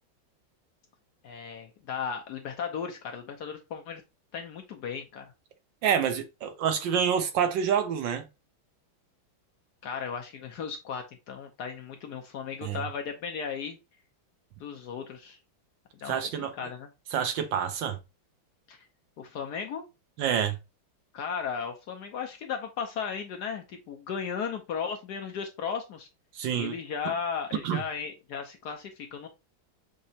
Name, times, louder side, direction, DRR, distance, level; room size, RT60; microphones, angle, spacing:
voice 1, 1.2-4.0 4.3-5.3 9.8-13.8 14.6-15.4 16.0-16.9 18.7-18.8 19.2-19.8 21.1-26.1 26.5-29.3, left 6 dB, 65° left, 1.1 m, -36 dB
voice 2, 5.8-8.2 12.6-12.8 16.1-16.5 17.1-18.0 20.2-20.6 26.3-26.7 27.6-27.8, right 8 dB, 70° right, 1.4 m, -27 dB
6.4 x 2.9 x 2.7 m
omnidirectional pair, 2.2 m